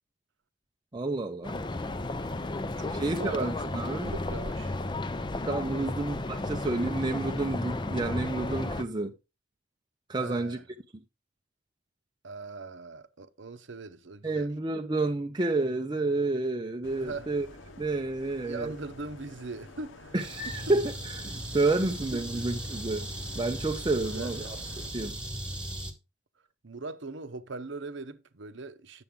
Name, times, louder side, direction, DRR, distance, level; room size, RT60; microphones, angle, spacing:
voice 1, 0.9-1.6 3.0-4.1 5.5-9.1 10.1-10.6 14.2-17.5 17.8-18.7 20.1-23.1 23.3-24.6 24.9-25.2, right 2 dB, 25° right, 0.6 m, -30 dB
sound 1, 1.4-8.8, left 2 dB, 25° left, 0.5 m, -33 dB
voice 2, 2.8-3.7 4.0-4.8 5.8-5.9 10.1-10.6 12.2-14.5 17.0-17.3 18.4-20.2 20.4-20.7 21.9-22.5 24.0-24.5 26.6-29.0, right 3 dB, 65° right, 0.8 m, -41 dB
sound 2, 16.8-24.9, left 2 dB, 70° left, 1.0 m, -50 dB
sound 3, 20.2-25.9, right 1 dB, 5° right, 1.3 m, -38 dB
8.7 x 7.0 x 3.6 m
head